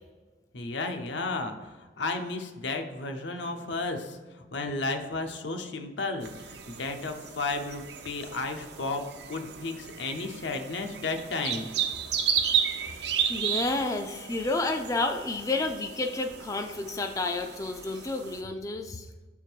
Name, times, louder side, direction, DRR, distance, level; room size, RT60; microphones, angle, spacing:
voice 1, 0.5-11.7, left 3 dB, 80° left, 5 dB, 0.7 m, -33 dB
sound 1, 6.2-18.4, right 8 dB, 65° right, 0.6 m, -34 dB
voice 2, 13.3-19.1, left 2 dB, 20° left, 4 dB, 0.3 m, -30 dB
7.4 x 3.6 x 4.6 m, 1.3 s
head